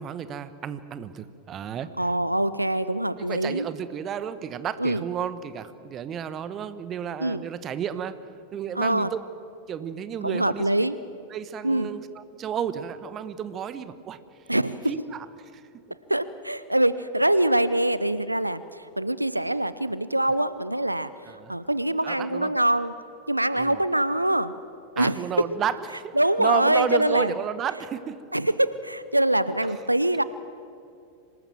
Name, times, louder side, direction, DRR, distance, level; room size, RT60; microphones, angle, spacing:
voice 1, 0.0-1.9 3.2-8.2 8.5-9.2 9.7-10.7 11.3-14.2 14.9-15.6 21.3-21.6 22.0-22.5 23.6-23.8 25.0-28.2, right 8 dB, 30° right, 14 dB, 1.1 m, -32 dB
voice 2, 2.0-3.7 4.8-5.0 7.2-7.4 8.8-9.1 10.2-11.0 11.6-11.9 14.5-14.9 16.1-21.1 21.5-22.9 23.3-24.5 25.0-25.4 26.2-27.3 28.3-30.2, right 1 dB, 85° right, 15 dB, 0.6 m, -24 dB
26.0 x 19.5 x 7.6 m, 2.5 s
figure-of-eight pair, 90°, 0 cm